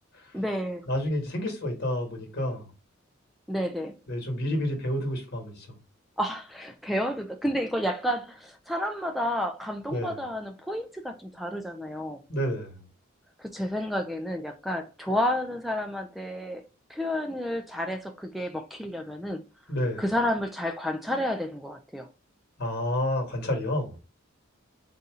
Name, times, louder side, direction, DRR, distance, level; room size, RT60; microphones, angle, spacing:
voice 1, 0.3-0.8 3.5-3.9 6.2-12.2 13.4-16.6 16.9-19.4 20.0-22.1, equal, ahead, 0.3 m, -30 dB
voice 2, 0.9-2.7 4.1-5.7 9.9-10.1 12.3-12.8 19.7-20.0 22.6-24.0, left 1 dB, 55° left, 1.5 m, -29 dB
4.1 x 2.7 x 3.6 m
head